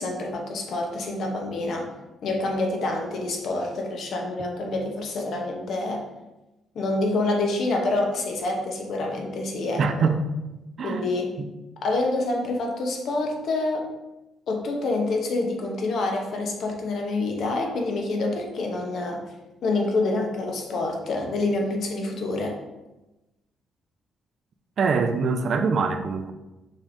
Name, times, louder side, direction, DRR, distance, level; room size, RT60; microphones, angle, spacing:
voice 1, 0.0-1.9 2.2-6.0 6.7-9.8 10.8-11.3 11.8-13.9 14.5-19.2 19.6-22.5, left 2 dB, 65° left, 1 dB, 0.9 m, -27 dB
voice 2, 9.8-10.2 10.8-11.1 24.8-26.3, right 5 dB, 55° right, 7 dB, 0.5 m, -23 dB
5.3 x 3.5 x 2.6 m, 1.0 s
cardioid pair, 90°, 0 cm